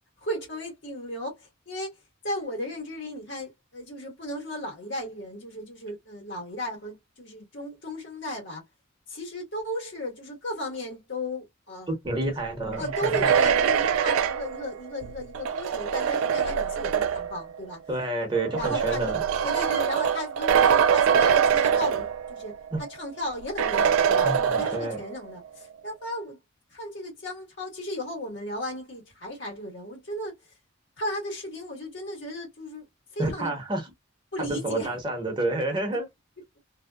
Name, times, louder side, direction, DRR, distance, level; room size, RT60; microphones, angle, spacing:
voice 1, 0.2-8.6 9.1-12.0 12.2-12.4 12.8-17.8 18.6-19.1 19.4-22.5 22.9-24.3 24.6-26.4 26.7-30.6 31.0-32.9 33.1-33.5 34.3-34.9, left 1 dB, 60° left, 1.4 m, -35 dB
voice 2, 11.9-13.3 17.9-19.2 22.7-22.8 24.2-25.0 33.2-33.9 34.4-36.1, right 2 dB, 25° right, 0.9 m, -29 dB
sound 1, 12.7-17.4 18.3-22.5 22.8-22.9 23.6-25.1, right 7 dB, 90° right, 0.4 m, -24 dB
2.7 x 2.2 x 2.2 m
head